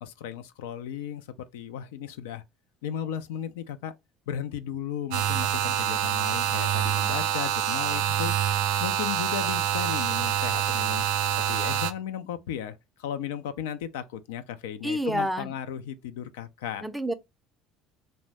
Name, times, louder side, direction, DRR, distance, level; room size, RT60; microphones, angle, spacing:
voice 1, 0.0-2.4 2.8-3.9 4.3-8.3 8.8-11.1 11.3-16.8, left 9 dB, 80° left, 0.3 m, -35 dB
sound 1, 5.1-11.9, right 10 dB, 75° right, 0.4 m, -26 dB
voice 2, 14.8-15.5 16.8-17.1, equal, 5° right, 0.5 m, -28 dB
2.6 x 2.1 x 3.1 m
hypercardioid pair, 75°, 0 cm